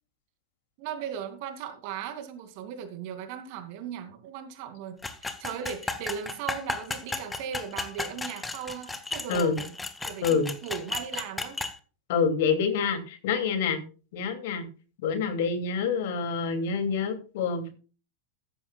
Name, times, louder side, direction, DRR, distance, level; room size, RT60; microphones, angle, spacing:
voice 1, 0.8-9.7 10.0-11.6, right 8 dB, 45° right, 9 dB, 2.4 m, -38 dB
sound 1, 5.0-11.7, left 3 dB, 10° left, 1.6 m, -34 dB
voice 2, 12.1-13.8 14.1-14.6 15.0-17.7, left 5 dB, 55° left, 8 dB, 2.6 m, -27 dB
14.0 x 13.5 x 2.3 m, 0.35 s
figure-of-eight pair, 90°, 0 cm